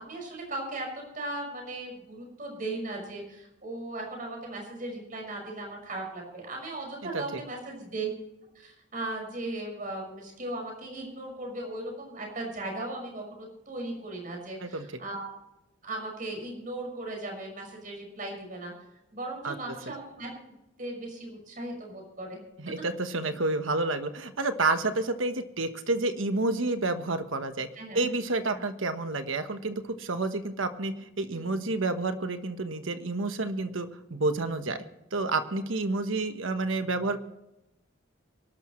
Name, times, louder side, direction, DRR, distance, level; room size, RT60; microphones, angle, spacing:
voice 1, 0.0-8.1 8.5-15.3 15.8-18.7 19.1-22.4 27.8-28.0 28.5-28.6 31.3-31.5, right 2 dB, 45° right, 0 dB, 5.9 m, -37 dB
voice 2, 22.6-27.7 27.9-34.8 35.1-37.2, right 2 dB, 80° right, 9 dB, 1.2 m, -29 dB
24.0 x 12.0 x 3.2 m, 0.93 s
head